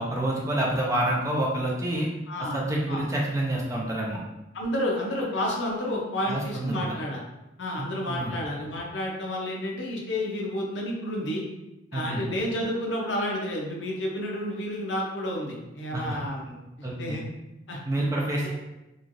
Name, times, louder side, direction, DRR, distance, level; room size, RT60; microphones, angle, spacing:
voice 1, 0.0-2.1 2.4-4.2 6.3-7.0 7.8-8.4 11.9-12.2 15.9-16.2 16.8-17.2 17.9-18.5, right 1 dB, 15° right, -2 dB, 0.4 m, -28 dB
voice 2, 2.3-3.1 4.5-7.2 7.6-11.4 11.9-17.2 17.7-17.8 18.4-18.5, left 1 dB, 75° left, -1 dB, 0.7 m, -30 dB
3.1 x 2.3 x 2.5 m, 0.96 s
head